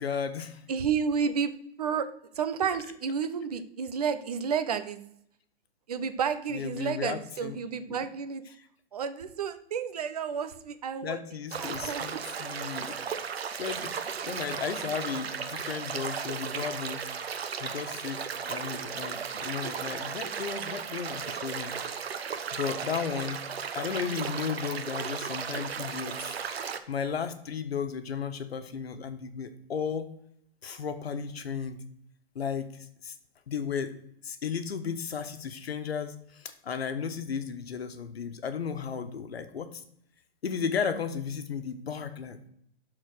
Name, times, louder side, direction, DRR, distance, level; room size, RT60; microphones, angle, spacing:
voice 1, 0.0-0.6 2.7-2.9 6.5-7.6 7.9-8.1 8.4-8.6 11.0-13.3 13.6-14.0 14.2-17.0 17.6-21.7 22.5-23.4 23.7-26.4 26.9-30.1 30.6-31.8 32.3-33.2 33.5-33.9 34.2-39.8 40.4-42.4, left 6 dB, 90° left, 9 dB, 1.4 m, -34 dB
voice 2, 0.7-1.5 1.8-2.1 2.3-5.0 5.9-8.4 8.9-11.2 11.6-12.1 14.1-14.4, right 6 dB, 40° right, 10 dB, 0.8 m, -31 dB
sound 1, 11.5-26.8, right 7 dB, 90° right, 1.1 m, -35 dB
12.0 x 4.3 x 6.1 m, 0.70 s
hypercardioid pair, 175°, 30 cm